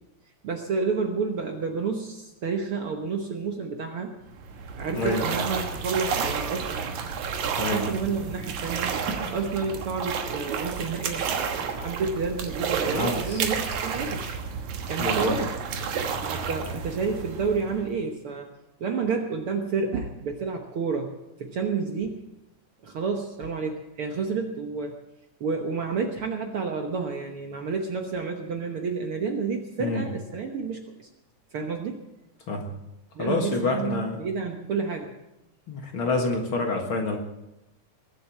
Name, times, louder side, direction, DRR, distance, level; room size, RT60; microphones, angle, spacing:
voice 1, 0.4-4.1 4.7-6.8 7.7-9.0 9.3-14.3 14.9-15.6 16.2-18.5 18.8-21.1 21.4-22.2 22.8-25.0 25.4-31.1 31.5-32.0 33.2-35.1, right 5 dB, 55° right, 3 dB, 1.7 m, -30 dB
sound 1, 4.3-18.0, right 6 dB, 75° right, 2.7 m, -30 dB
voice 2, 4.9-5.2 7.6-7.9 12.9-13.5 15.0-15.3 29.8-30.0 32.5-32.6 33.2-34.2 35.7-37.2, left 3 dB, 50° left, 2 dB, 2.1 m, -27 dB
21.0 x 7.7 x 7.5 m, 0.92 s
omnidirectional pair, 3.5 m